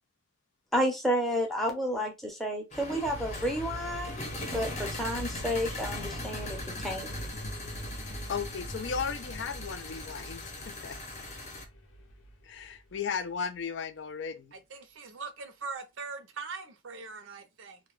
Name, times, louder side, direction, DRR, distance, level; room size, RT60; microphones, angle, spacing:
voice 1, 0.7-4.3 4.5-7.1, equal, ahead, 0.6 m, -31 dB
sound 1, 2.7-11.6, left 2 dB, 35° left, 0.7 m, -41 dB
sound 2, 3.0-13.0, equal, 90° left, 0.7 m, -42 dB
voice 2, 8.3-11.0 12.4-14.6, left 6 dB, 60° left, 0.4 m, -36 dB
voice 3, 14.7-17.8, right 4 dB, 75° right, 0.6 m, -41 dB
2.2 x 2.2 x 3.1 m
head